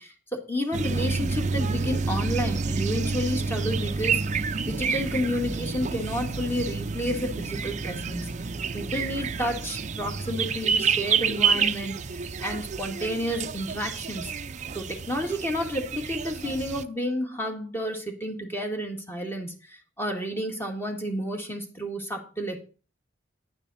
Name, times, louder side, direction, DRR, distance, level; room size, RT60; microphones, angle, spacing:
voice 1, 0.0-8.3 8.7-14.3 14.8-19.5 20.0-22.6, equal, 15° left, 3 dB, 1.8 m, -31 dB
sound 1, 0.7-16.8, right 5 dB, 40° right, 0.5 m, -29 dB
10.5 x 8.9 x 4.1 m, 0.37 s
head